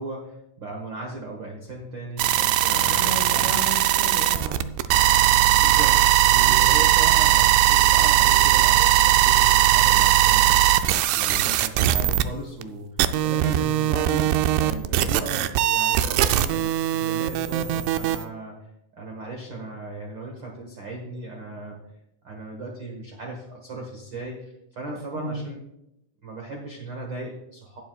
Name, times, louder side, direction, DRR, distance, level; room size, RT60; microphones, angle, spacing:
voice 1, 0.0-3.5 5.5-18.5 18.9-21.8 22.2-25.6 26.2-27.8, right 2 dB, 65° right, 0 dB, 1.2 m, -37 dB
sound 1, 2.2-12.2 12.6-12.7 13.0-18.2, right 13 dB, 80° right, 2.1 m, -19 dB
voice 2, 2.6-4.6 6.4-6.6 25.1-25.4, equal, 10° right, -2 dB, 2.5 m, -34 dB
19.0 x 7.1 x 2.3 m, 0.84 s
omnidirectional pair, 4.2 m